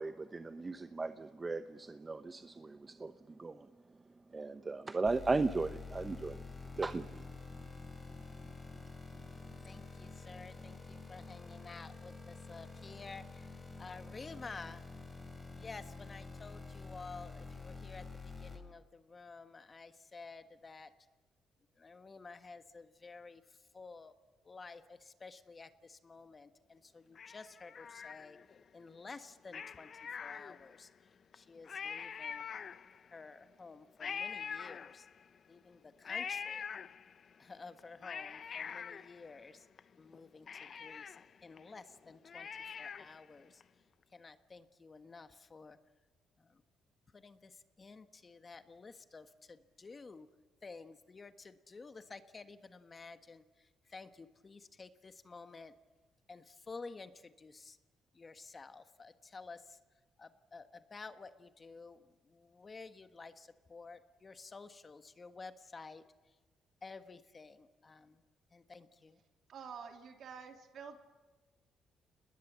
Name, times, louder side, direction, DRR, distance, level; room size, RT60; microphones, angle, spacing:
voice 1, 0.0-3.7 4.3-6.4 6.8-7.2, right 3 dB, 25° right, 9 dB, 0.9 m, -36 dB
sound 1, 5.1-18.6, left 3 dB, 10° left, 6.4 m, -48 dB
voice 2, 9.6-13.5 13.8-14.8 15.5-18.0 18.4-20.9 21.8-23.4 23.7-24.1 24.5-28.4 28.7-29.9 30.2-30.9 31.3-32.4 33.1-35.0 35.5-36.6 37.4-39.6 40.0-41.0 41.4-42.5 42.8-43.5 44.1-45.8 47.1-47.5 47.8-50.3 50.6-53.4 53.9-55.7 56.3-57.1 57.4-57.8 58.2-59.6 60.2-62.0 62.3-66.0 66.8-68.2 68.5-69.2, left 4 dB, 30° left, 9 dB, 1.4 m, -51 dB
Cat, 27.2-28.6 29.5-30.9 31.3-31.4 31.6-33.2 34.0-35.4 36.0-37.3 37.8-39.8 40.1-40.2 40.5-43.3 43.6-43.7, left 7 dB, 50° left, 0.7 m, -44 dB
voice 3, 69.5-71.0, right 6 dB, 65° right, 4 dB, 3.0 m, -48 dB
28.0 x 20.5 x 7.4 m, 1.2 s
cardioid pair, 90°, 0 cm